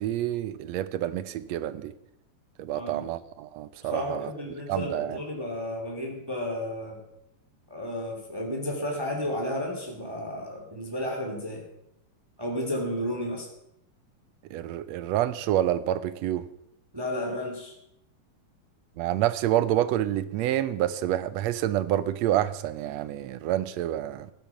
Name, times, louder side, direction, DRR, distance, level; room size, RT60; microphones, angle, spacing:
voice 1, 0.0-1.9 2.6-4.3 4.7-5.2 14.5-16.5 19.0-24.3, right 12 dB, 75° right, 1.6 m, -28 dB
voice 2, 2.7-3.1 3.8-7.0 7.7-11.6 12.4-13.5 16.9-17.7, left 1 dB, 5° right, 2.7 m, -32 dB
14.5 x 12.5 x 6.0 m
omnidirectional pair, 3.7 m